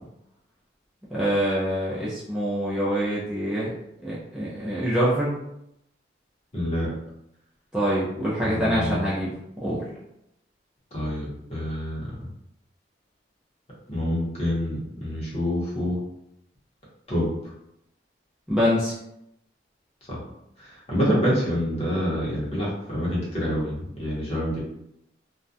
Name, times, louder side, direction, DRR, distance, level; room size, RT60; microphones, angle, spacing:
voice 1, 1.1-3.7 4.0-5.4 7.7-9.8 18.5-18.9, equal, 5° right, -9 dB, 0.4 m, -25 dB
voice 2, 6.5-6.9 8.5-9.1 10.9-12.1 13.9-16.0 17.1-17.3 20.1-20.2 20.9-24.6, equal, 35° left, -6 dB, 0.8 m, -26 dB
2.3 x 2.1 x 2.6 m, 0.81 s
head